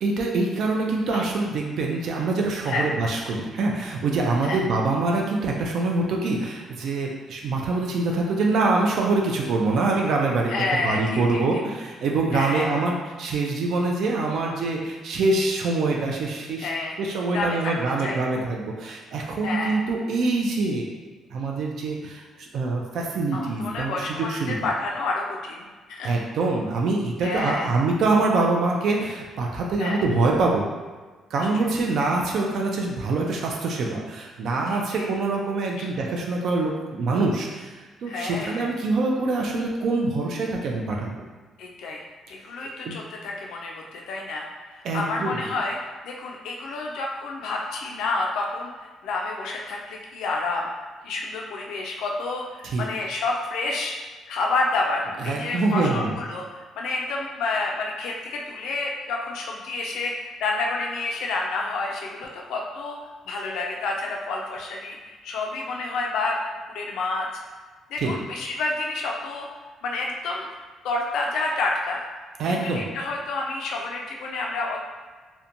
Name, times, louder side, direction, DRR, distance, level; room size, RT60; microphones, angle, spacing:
voice 1, 0.0-16.7 17.0-20.9 21.3-24.6 26.0-30.6 31.3-41.2 42.9-43.0 44.8-45.4 52.6-52.8 55.2-56.1 68.0-68.1 72.4-72.9, right 3 dB, 55° right, -1 dB, 0.3 m, -25 dB
voice 2, 10.5-11.2 12.3-12.8 16.6-17.0 17.3-17.7 18.0-18.2 19.4-19.8 23.3-26.1 27.2-27.7 29.8-30.1 31.4-31.5 34.7-35.0 35.8-35.9 38.1-38.7 41.6-50.7 51.0-53.9 54.3-63.0 63.3-66.4 66.7-67.3 67.9-69.5 69.8-70.5 70.8-72.0 72.5-74.8, left 3 dB, 80° left, -1 dB, 0.3 m, -29 dB
2.8 x 2.1 x 2.5 m, 1.4 s
cardioid pair, 170°, 0 cm